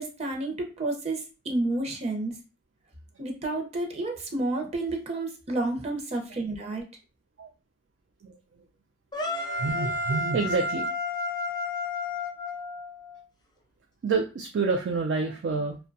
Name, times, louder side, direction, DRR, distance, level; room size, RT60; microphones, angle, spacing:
voice 1, 0.0-2.3 3.2-6.8, right 2 dB, 35° right, 2 dB, 0.6 m, -30 dB
sound 1, 9.1-13.2, left 2 dB, 25° left, 0.4 m, -31 dB
voice 2, 9.6-10.9 14.0-15.8, right 4 dB, 85° right, 3 dB, 0.4 m, -28 dB
2.6 x 2.1 x 2.5 m, 0.32 s
head